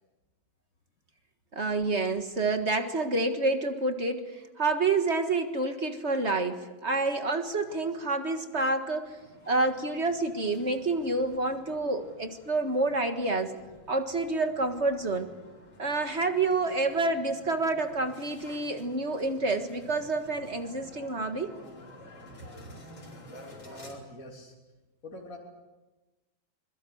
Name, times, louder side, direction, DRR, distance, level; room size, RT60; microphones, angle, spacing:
voice 1, 1.5-9.2 9.5-13.6 13.9-15.3 15.8-21.6, right 3 dB, 35° right, 7 dB, 1.8 m, -28 dB
sound 1, 9.0-23.9, left 1 dB, 85° left, 5.6 m, -51 dB
voice 2, 23.6-24.6 25.0-25.4, left 1 dB, 45° left, -2 dB, 3.5 m, -44 dB
25.0 x 22.0 x 8.0 m, 1.1 s
omnidirectional pair, 2.1 m